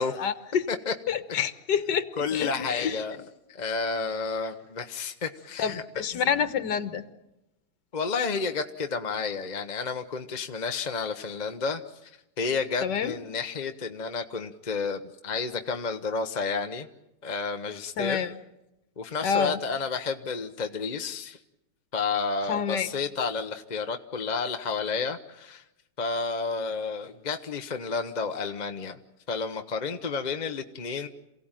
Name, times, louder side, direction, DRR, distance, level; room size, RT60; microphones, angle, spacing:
voice 1, 0.0-0.6 1.1-2.1 2.3-3.0 5.6-7.0 12.8-13.1 18.0-18.3 19.2-19.6 22.5-22.9, left 7 dB, 80° left, 10 dB, 1.7 m, -28 dB
voice 2, 2.2-3.2 3.5-5.8 7.9-12.1 12.4-16.9 17.2-18.2 19.0-21.4 21.9-25.6 26.0-29.0 29.3-31.1, left 4 dB, 35° left, 6 dB, 0.8 m, -31 dB
28.0 x 17.0 x 9.0 m, 0.94 s
omnidirectional pair, 1.8 m